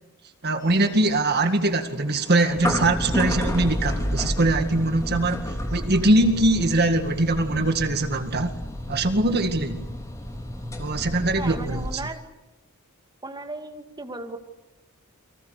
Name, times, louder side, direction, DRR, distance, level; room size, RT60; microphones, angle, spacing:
voice 1, 0.4-8.5 8.9-9.9 10.8-12.0, right 2 dB, 45° right, 2.0 m, -22 dB
sound 1, 0.6-11.9, equal, 15° left, 3.2 m, -31 dB
voice 2, 11.4-12.2 13.2-14.4, right 2 dB, 20° right, 2.1 m, -36 dB
29.5 x 24.0 x 6.7 m
head